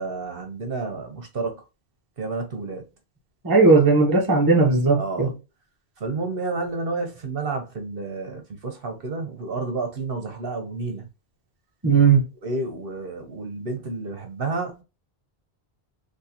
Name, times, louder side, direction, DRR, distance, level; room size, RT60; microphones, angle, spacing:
voice 1, 0.0-1.6 2.2-2.8 5.0-5.3 6.0-11.1 12.4-14.8, right 3 dB, 60° right, 1.0 m, -30 dB
voice 2, 3.4-5.3 11.8-12.2, right 4 dB, 20° right, 0.8 m, -17 dB
3.7 x 2.7 x 2.8 m
omnidirectional pair, 1.1 m